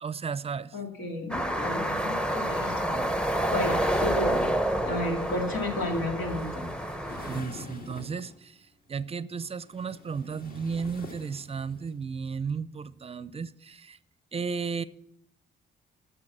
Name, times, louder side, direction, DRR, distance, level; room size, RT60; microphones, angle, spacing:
voice 1, 0.0-0.8 7.2-14.0 14.3-14.8, right 5 dB, 30° right, 0.5 m, -34 dB
voice 2, 0.7-4.5 4.8-6.5, left 2 dB, 90° left, 2.4 m, -33 dB
sound 1, 1.3-7.4, right 1 dB, 5° left, 0.7 m, -28 dB
sound 2, 3.8-8.4 9.4-11.9, left 3 dB, 45° left, 1.7 m, -47 dB
12.0 x 6.8 x 7.3 m
cardioid pair, 90°, 20 cm